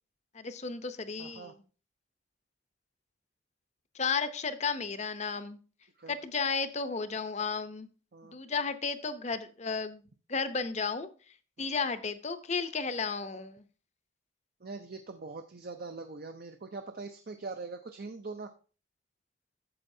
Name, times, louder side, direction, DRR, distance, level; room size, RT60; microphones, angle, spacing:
voice 1, 0.3-1.5 3.9-5.6 6.1-7.9 8.3-10.0 10.3-11.1 11.6-13.6, left 5 dB, 35° left, 11 dB, 0.7 m, -33 dB
voice 2, 1.2-1.5 6.0-6.2 8.1-8.4 11.6-11.7 14.6-18.5, right 3 dB, 50° right, 6 dB, 0.6 m, -42 dB
12.0 x 7.7 x 2.7 m, 0.37 s
head